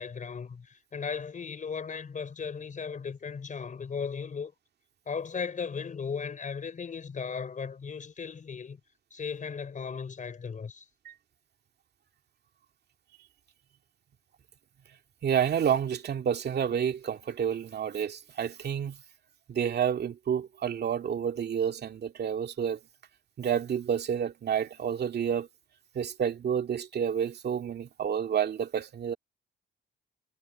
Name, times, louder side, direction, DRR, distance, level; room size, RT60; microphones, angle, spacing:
voice 1, 0.0-4.5 5.1-8.8 9.1-10.8, left 6 dB, 40° left, 4.7 m, -36 dB
voice 2, 15.2-19.0 19.5-22.8 23.4-25.5 25.9-29.2, right 8 dB, 55° right, 2.3 m, -29 dB
cardioid pair, 90°, 20 cm